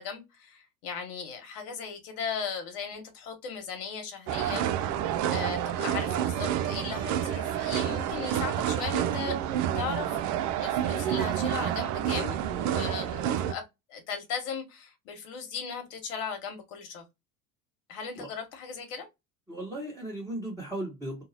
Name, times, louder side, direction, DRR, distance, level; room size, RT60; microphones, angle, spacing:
voice 1, 0.0-4.6 5.3-9.4 9.7-10.1 10.6-17.0 17.9-19.1, left 6 dB, 65° left, 1.3 m, -37 dB
sound 1, 4.3-13.5, right 10 dB, 45° right, 0.4 m, -29 dB
voice 2, 19.5-21.2, right 1 dB, 10° right, 1.2 m, -36 dB
2.7 x 2.3 x 2.8 m
hypercardioid pair, 75°, 44 cm